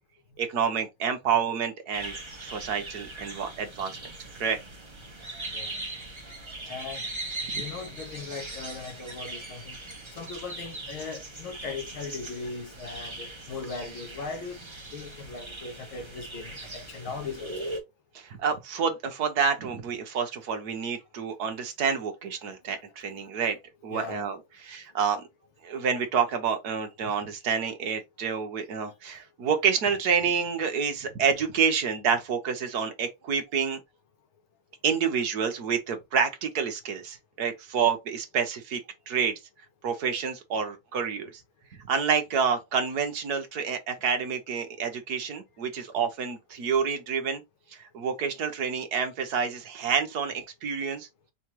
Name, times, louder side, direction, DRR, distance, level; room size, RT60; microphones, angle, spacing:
voice 1, 0.4-4.0 4.4-4.6 6.7-6.8 18.1-23.6 23.8-24.4 24.6-25.2 25.6-33.8 34.8-38.8 39.1-39.4 39.8-41.4 41.9-47.4 47.7-51.1, right 6 dB, 55° right, 1.4 m, -28 dB
sound 1, 1.9-17.8, right 2 dB, 20° right, 0.7 m, -40 dB
voice 2, 5.2-5.9 6.3-7.0 7.5-9.8 10.2-17.6 23.9-24.3, left 4 dB, 75° left, 2.1 m, -39 dB
4.7 x 3.4 x 3.0 m
omnidirectional pair, 2.3 m